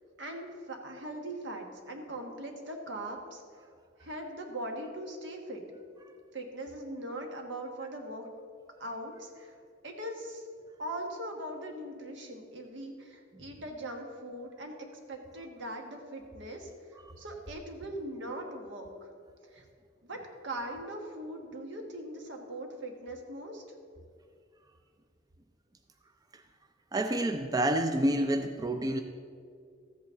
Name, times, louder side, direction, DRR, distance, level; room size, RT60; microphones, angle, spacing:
voice 1, 0.2-3.4 4.0-5.6 6.3-8.3 8.8-9.5 9.8-10.5 10.8-18.9 19.5-19.6 20.0-20.2 20.4-23.6, right 1 dB, 70° right, 3 dB, 1.4 m, -40 dB
voice 2, 26.9-29.0, right 1 dB, 20° right, 7 dB, 0.4 m, -28 dB
13.5 x 8.2 x 3.7 m, 2.2 s
head